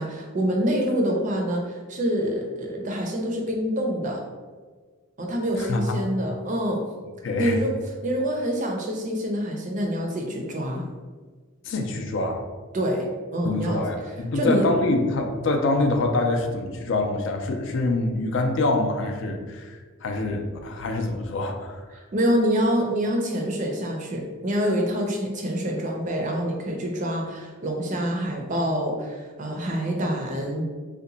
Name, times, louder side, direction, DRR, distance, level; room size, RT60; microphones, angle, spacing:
voice 1, 0.0-4.2 5.2-6.8 7.4-7.7 8.0-10.8 12.7-13.1 13.3-13.8 14.3-14.7 21.9-30.6, equal, 35° right, 1 dB, 0.5 m, -26 dB
voice 2, 5.5-6.0 7.2-7.6 11.6-12.4 13.4-21.8, left 2 dB, 55° left, 4 dB, 0.4 m, -25 dB
2.8 x 2.2 x 3.9 m, 1.4 s
head